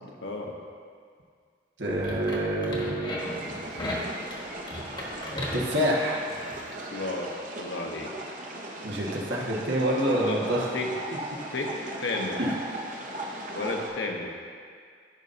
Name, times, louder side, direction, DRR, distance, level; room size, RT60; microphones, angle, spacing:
voice 1, 0.0-0.5 6.9-8.4 10.2-10.9 11.2-11.7 12.0-12.4 13.5-14.3, left 2 dB, 85° left, 0 dB, 1.1 m, -33 dB
voice 2, 1.8-3.2 5.5-6.2 8.8-10.7 12.4-12.5, right 1 dB, 80° right, -3 dB, 1.5 m, -27 dB
sound 1, 1.9-6.7, left 1 dB, 25° left, 1.2 m, -36 dB
sound 2, 3.2-13.9, right 1 dB, 45° right, 0.9 m, -38 dB
14.5 x 5.7 x 2.6 m, 2.1 s
head